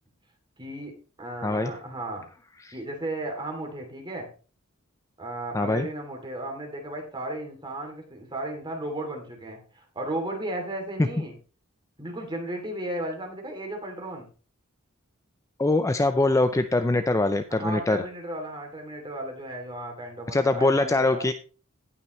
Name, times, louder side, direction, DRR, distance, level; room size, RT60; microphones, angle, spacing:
voice 1, 0.6-0.9 1.2-2.3 2.7-4.3 5.2-11.3 12.0-14.3 17.5-21.3, right 1 dB, 20° right, 2 dB, 2.8 m, -34 dB
voice 2, 5.5-5.9 15.6-18.0 20.3-21.3, left 2 dB, 15° left, 9 dB, 0.5 m, -23 dB
17.5 x 5.9 x 3.1 m, 0.36 s
head